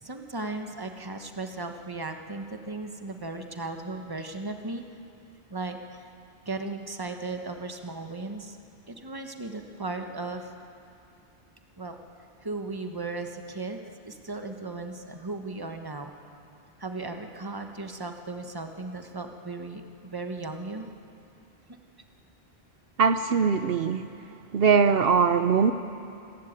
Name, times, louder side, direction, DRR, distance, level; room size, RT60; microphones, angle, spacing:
voice 1, 0.0-4.8 5.5-6.1 6.4-8.6 8.9-10.5 11.8-12.0 12.4-16.1 16.8-20.9, right 3 dB, 20° right, 5 dB, 1.3 m, -36 dB
voice 2, 23.0-24.1 24.5-25.7, right 5 dB, 70° right, 9 dB, 0.9 m, -21 dB
28.0 x 13.0 x 9.0 m, 2.6 s
omnidirectional pair, 1.0 m